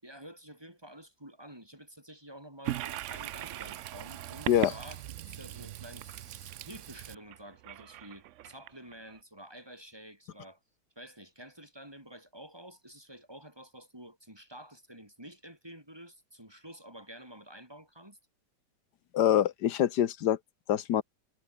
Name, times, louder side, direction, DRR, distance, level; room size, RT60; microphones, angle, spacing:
voice 1, 0.0-10.6 11.0-18.2, right 1 dB, 15° right, 7.0 m, -50 dB
Toilet flush, 2.6-9.2, right 13 dB, 85° right, 0.6 m, -40 dB
voice 2, 19.1-20.4 20.7-21.0, left 11 dB, 70° left, 1.5 m, -25 dB
omnidirectional pair, 1.9 m